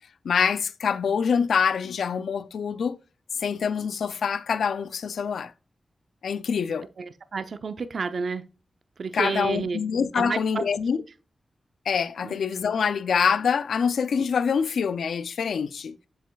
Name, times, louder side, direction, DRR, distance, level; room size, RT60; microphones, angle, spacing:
voice 1, 0.2-3.0 3.4-5.5 6.2-6.9 9.1-11.0 11.9-16.0, left 6 dB, 90° left, 0.3 m, -25 dB
voice 2, 7.3-8.4 9.0-9.8 10.2-10.6 12.2-12.3, right 5 dB, 75° right, 0.5 m, -30 dB
7.6 x 6.8 x 2.3 m
cardioid pair, 40°, 0 cm